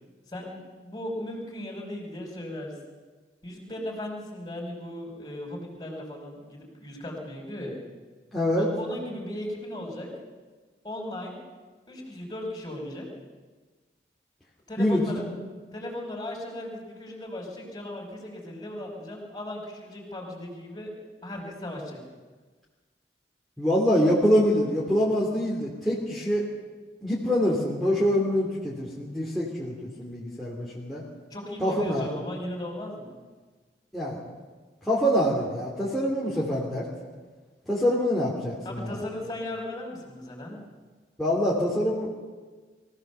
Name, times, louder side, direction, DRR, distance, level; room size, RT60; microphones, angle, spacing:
voice 1, 0.3-2.7 3.4-7.8 8.5-10.1 10.8-11.3 11.9-13.1 14.7-15.2 15.7-20.9 21.2-22.0 31.3-33.2 38.6-40.6, left 1 dB, 20° left, 0 dB, 4.9 m, -37 dB
voice 2, 8.3-8.7 14.8-15.2 23.6-26.4 27.0-31.0 31.6-32.1 33.9-34.2 34.8-36.9 37.7-39.0 41.2-42.1, equal, ahead, -5 dB, 3.0 m, -25 dB
23.5 x 16.0 x 6.9 m, 1.4 s
head